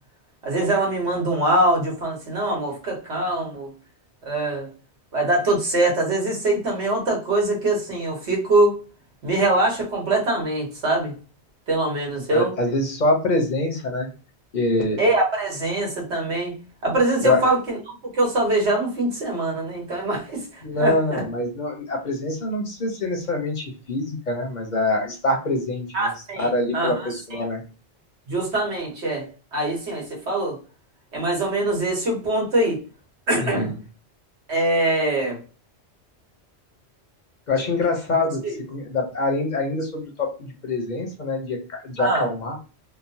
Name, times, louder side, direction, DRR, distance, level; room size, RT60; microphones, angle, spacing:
voice 1, 0.4-3.7 4.2-4.7 5.1-8.8 9.2-11.1 11.7-12.5 15.0-16.5 16.8-17.8 18.1-21.2 25.9-27.4 28.3-30.6 31.1-32.8 33.3-33.7 34.5-35.4 38.4-38.6 42.0-42.3, right 2 dB, 80° right, 0 dB, 1.4 m, -23 dB
voice 2, 12.3-14.1 14.5-15.0 17.2-17.4 20.6-27.6 33.4-33.7 37.5-38.4 38.7-42.6, left 2 dB, 50° left, 2 dB, 0.6 m, -25 dB
3.0 x 2.0 x 2.6 m, 0.35 s
omnidirectional pair, 1.1 m